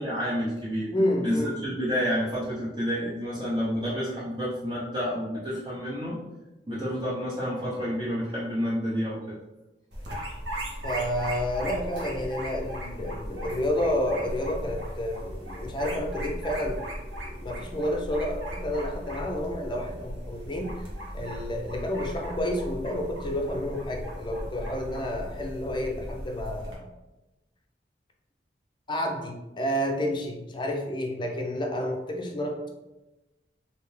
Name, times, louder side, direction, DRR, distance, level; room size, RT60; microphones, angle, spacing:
voice 1, 0.0-0.9 1.2-6.2 6.7-9.4, equal, 25° right, -9 dB, 0.8 m, -29 dB
voice 2, 0.9-1.6 10.8-16.8 17.2-20.9 21.1-26.9 28.9-32.7, left 1 dB, 25° left, 2 dB, 0.5 m, -30 dB
sound 1, 9.9-26.7, equal, 85° right, 1.1 m, -37 dB
3.3 x 2.8 x 3.2 m, 1.0 s
head